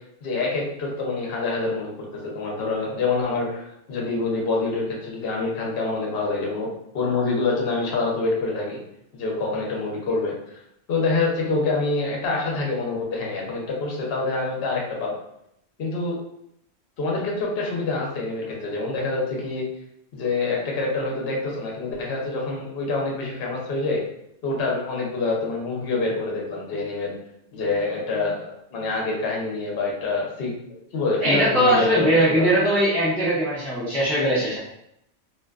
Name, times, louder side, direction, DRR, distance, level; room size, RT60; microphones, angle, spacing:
voice 1, 0.2-6.7 6.9-8.8 9.1-10.6 10.9-15.1 15.8-16.2 17.0-19.6 20.1-24.0 24.4-27.1 27.5-32.4, left 3 dB, 60° left, -1 dB, 0.8 m, -26 dB
voice 2, 31.2-34.6, right 1 dB, ahead, -9 dB, 0.4 m, -20 dB
2.5 x 2.2 x 2.3 m, 0.77 s
omnidirectional pair, 1.3 m